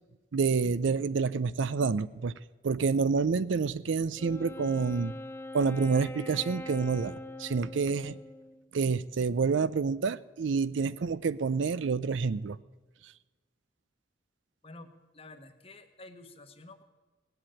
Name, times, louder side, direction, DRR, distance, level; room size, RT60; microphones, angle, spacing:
voice 1, 0.3-2.3 2.6-5.1 5.5-8.2 8.7-12.6, right 5 dB, 80° right, 17 dB, 0.5 m, -28 dB
Wind instrument woodwind instrument, 4.2-8.7, left 1 dB, 10° left, 0.5 m, -43 dB
voice 2, 14.6-16.8, left 2 dB, 30° left, 8 dB, 1.1 m, -50 dB
18.0 x 8.0 x 8.6 m, 1.3 s
head